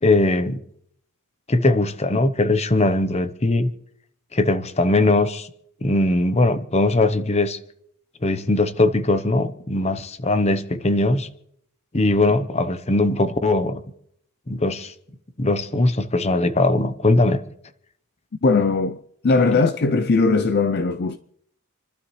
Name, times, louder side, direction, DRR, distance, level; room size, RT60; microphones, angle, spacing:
voice 1, 0.0-0.6 1.5-3.7 4.3-5.5 5.8-7.6 8.2-11.3 11.9-13.8 14.5-14.9 15.4-17.4, left 2 dB, 30° left, 0.9 m, -20 dB
voice 2, 18.4-21.2, left 3 dB, 50° left, 0.5 m, -19 dB
28.5 x 12.0 x 3.2 m
head